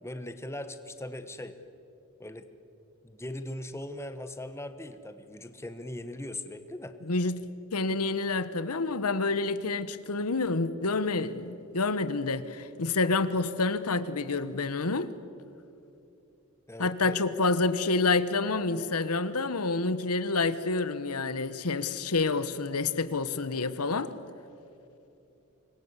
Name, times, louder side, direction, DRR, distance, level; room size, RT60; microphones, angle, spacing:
voice 1, 0.0-1.5 2.2-2.5 3.0-6.9 16.7-17.2, left 1 dB, 10° left, 10 dB, 1.2 m, -39 dB
voice 2, 7.0-7.4 7.7-15.1 16.8-24.1, left 3 dB, 90° left, 14 dB, 1.2 m, -28 dB
26.0 x 22.0 x 8.2 m, 2.8 s
head